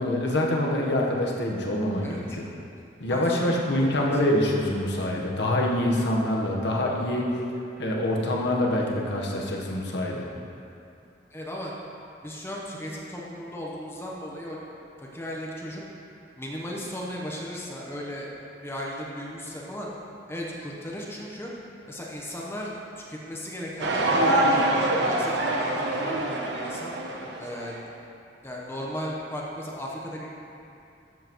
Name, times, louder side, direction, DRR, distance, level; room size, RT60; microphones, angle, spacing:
voice 1, 0.0-2.5 3.0-7.3 7.8-10.3, left 1 dB, 70° left, -1 dB, 1.2 m, -25 dB
voice 2, 2.0-2.4 3.1-4.2 11.3-11.7 12.2-14.6 15.0-15.8 16.4-18.3 18.6-19.9 20.3-21.5 21.9-22.8 23.1-26.9 27.4-27.8 28.4-30.3, equal, 15° left, -4 dB, 1.0 m, -36 dB
sound 1, 23.8-27.8, right 1 dB, 70° right, 1.0 m, -25 dB
12.5 x 7.5 x 3.1 m, 2.6 s
head